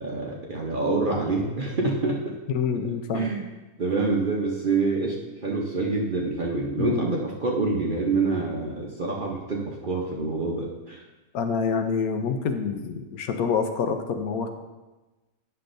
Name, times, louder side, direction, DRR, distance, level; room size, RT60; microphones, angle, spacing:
voice 1, 0.0-2.4 2.8-3.5 3.8-5.2 5.4-11.0, right 3 dB, 45° right, -2 dB, 0.7 m, -26 dB
voice 2, 2.5-3.3 6.8-7.0 11.3-14.5, left 6 dB, 75° left, 6 dB, 1.1 m, -27 dB
9.7 x 6.8 x 2.6 m, 1.1 s
omnidirectional pair, 1.6 m